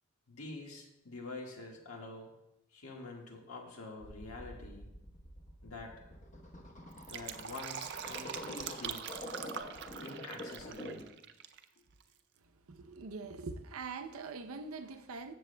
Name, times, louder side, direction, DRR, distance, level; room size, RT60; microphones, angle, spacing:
voice 1, 0.3-2.3 2.7-4.9 5.6-5.9 7.1-9.0 10.0-11.0, left 2 dB, 90° left, 1.6 m, -46 dB
sound 1, 4.0-11.2, left 1 dB, 35° left, 0.9 m, -47 dB
Fill (with liquid), 6.8-11.6 11.9-12.0, right 8 dB, 55° right, 0.5 m, -43 dB
voice 2, 12.5-15.3, right 4 dB, 90° right, 0.7 m, -43 dB
14.5 x 6.9 x 2.2 m
head